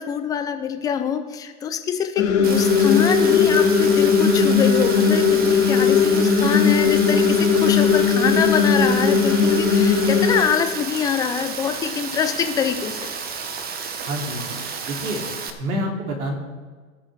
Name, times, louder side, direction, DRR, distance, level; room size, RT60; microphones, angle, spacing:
voice 1, 0.0-13.0, left 8 dB, 10° left, 7 dB, 0.4 m, -25 dB
sound 1, 2.2-10.4, left 6 dB, 70° left, 2.9 m, -18 dB
Rain, 2.4-15.5, right 5 dB, 20° right, 1.1 m, -32 dB
voice 2, 14.1-14.5 14.8-15.2 15.6-16.3, equal, 75° right, 2 dB, 3.0 m, -27 dB
18.0 x 6.3 x 4.7 m, 1.5 s
hypercardioid pair, 120°, 44 cm